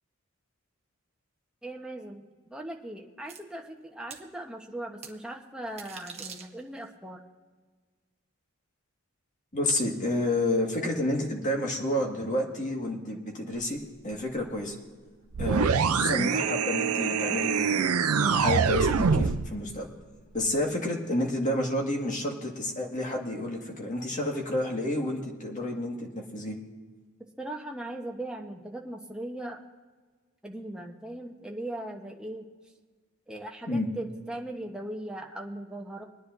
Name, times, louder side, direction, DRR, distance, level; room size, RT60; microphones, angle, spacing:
voice 1, 1.6-7.2 15.4-15.6 27.4-29.6 30.4-32.5 33.3-36.0, right 1 dB, 5° right, 0 dB, 1.0 m, -39 dB
sound 1, 3.3-3.4 4.1-4.2 5.0-5.1 5.7-6.9, right 6 dB, 30° right, 1.1 m, -43 dB
voice 2, 9.5-14.7 15.4-17.9 18.2-19.9 20.3-26.6 33.7-33.9, left 1 dB, 35° left, 0 dB, 1.9 m, -30 dB
sound 2, 15.3-19.5, right 6 dB, 85° right, 0.5 m, -25 dB
25.5 x 9.9 x 2.7 m, 1.4 s
head